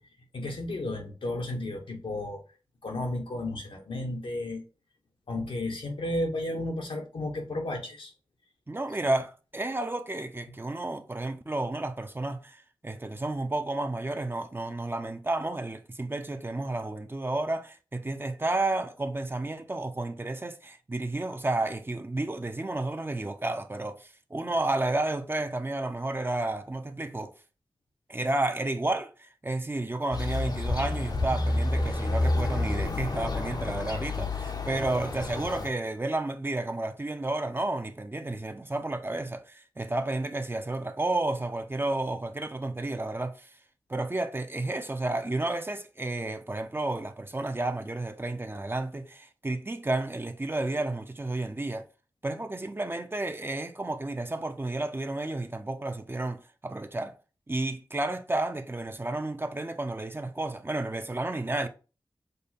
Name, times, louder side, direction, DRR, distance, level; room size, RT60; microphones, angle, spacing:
voice 1, 0.3-2.4 2.8-4.6 5.3-8.1 9.0-9.1, left 1 dB, 90° left, 1.2 m, -33 dB
voice 2, 8.7-27.3 28.1-43.5 43.9-51.8 52.2-57.2 57.5-61.7, right 2 dB, 25° right, 0.5 m, -31 dB
sound 1, 30.1-35.7, left 2 dB, 50° left, 0.7 m, -29 dB
5.2 x 2.2 x 4.1 m
wide cardioid pair, 65°, 9 cm